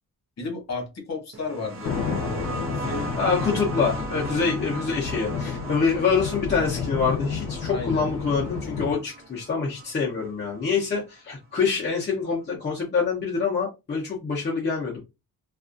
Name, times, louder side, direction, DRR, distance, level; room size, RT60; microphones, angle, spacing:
voice 1, 0.4-3.1 4.4-4.5 5.7-6.1 7.6-8.1, left 3 dB, 45° left, 2 dB, 1.1 m, -34 dB
sound 1, 1.3-10.6 11.7-11.8, right 3 dB, 35° right, 0.5 m, -37 dB
sound 2, 1.8-9.0, left 6 dB, 85° left, 0.7 m, -31 dB
voice 2, 3.2-15.0, left 5 dB, 25° left, -4 dB, 0.6 m, -26 dB
2.4 x 2.3 x 2.5 m, 0.25 s
wide cardioid pair, 170°, 38 cm